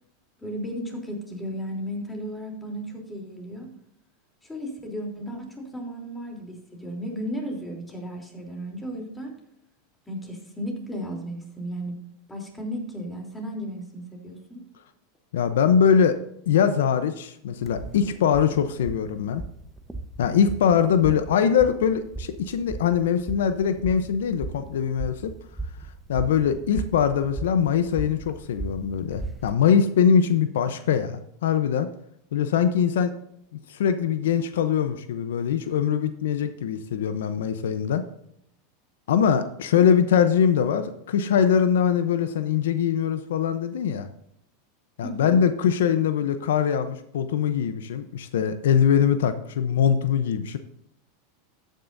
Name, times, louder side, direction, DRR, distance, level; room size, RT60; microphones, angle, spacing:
voice 1, 0.4-3.7 4.4-9.4 10.1-11.9 12.3-14.6 20.6-21.1 45.0-45.4, equal, 10° left, 1 dB, 3.3 m, -34 dB
voice 2, 15.3-16.2 16.5-19.4 20.2-25.3 26.1-31.9 32.3-33.2 33.7-38.0 39.1-44.1 45.0-50.6, left 8 dB, 80° left, 11 dB, 0.8 m, -22 dB
sound 1, 17.6-29.5, right 3 dB, 5° right, 1.0 m, -38 dB
13.5 x 9.2 x 2.7 m, 0.76 s
hypercardioid pair, 115°, 0 cm